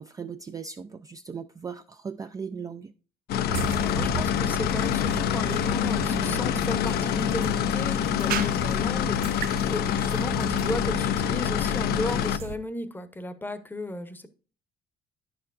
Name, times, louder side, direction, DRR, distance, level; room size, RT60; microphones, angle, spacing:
voice 1, 0.0-2.9, right 6 dB, 20° right, 0.3 m, -38 dB
sound 1, 3.3-12.4, left 10 dB, 70° left, 0.5 m, -26 dB
voice 2, 3.4-14.3, left 2 dB, 10° left, 0.8 m, -35 dB
sound 2, 3.5-12.6, right 7 dB, 60° right, 0.6 m, -35 dB
9.6 x 6.8 x 2.5 m
cardioid pair, 110°, 17 cm